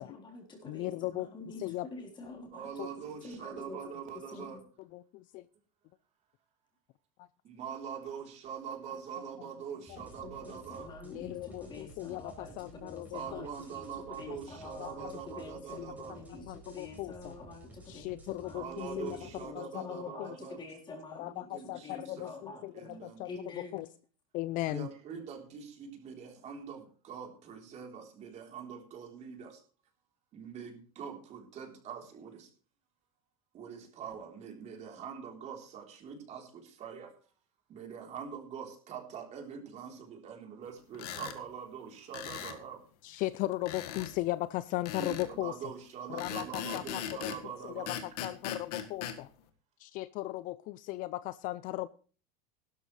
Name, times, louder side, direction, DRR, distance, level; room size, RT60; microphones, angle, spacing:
voice 1, 0.0-2.7 3.2-3.8 4.1-4.6 10.0-23.9, left 3 dB, 25° left, 0 dB, 4.0 m, -47 dB
voice 2, 0.7-1.9 2.8-2.9 4.4-4.5 4.9-5.4 9.9-10.0 11.0-13.4 14.8-15.2 15.7-15.8 16.5-17.4 17.9-19.3 19.5-20.4 21.1-23.3 23.6-23.9 24.3-24.9 43.0-45.7 46.1-47.3 47.6-47.8 48.2-49.3 49.8-51.9, left 17 dB, 45° left, 17 dB, 0.5 m, -37 dB
voice 3, 2.5-4.6 7.4-10.9 13.1-16.2 18.5-20.6 21.5-23.2 24.7-29.6 30.3-32.5 33.5-37.1 37.7-42.8 45.0-47.9, right 7 dB, 35° right, 2 dB, 3.7 m, -44 dB
sound 1, 9.9-19.5, right 1 dB, 10° right, 4.4 m, -53 dB
sound 2, 40.9-41.4 42.1-42.6 43.7-44.1 44.9-45.3 46.2-47.4 47.9-49.2, left 9 dB, 85° left, 1.8 m, -39 dB
16.5 x 12.5 x 3.3 m, 0.40 s
supercardioid pair, 140°, 19 cm